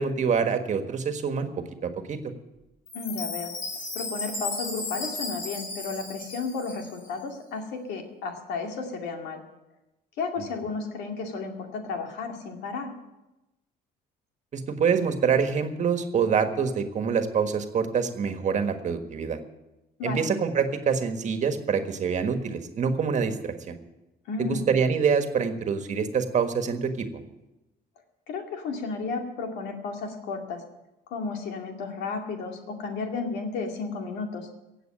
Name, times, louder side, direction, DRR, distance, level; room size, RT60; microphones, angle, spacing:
voice 1, 0.0-1.5 1.8-2.2 14.5-19.4 20.0-23.8 24.4-27.1, right 6 dB, 45° right, 7 dB, 1.6 m, -26 dB
voice 2, 2.9-3.5 3.9-9.4 10.2-12.9 20.0-20.2 24.3-24.7 28.3-30.6 31.1-34.5, left 4 dB, 85° left, 3 dB, 2.4 m, -33 dB
Chime, 2.9-7.1, left 3 dB, 55° left, 3.9 m, -35 dB
16.5 x 7.9 x 7.6 m, 0.98 s
cardioid pair, 110°, 17 cm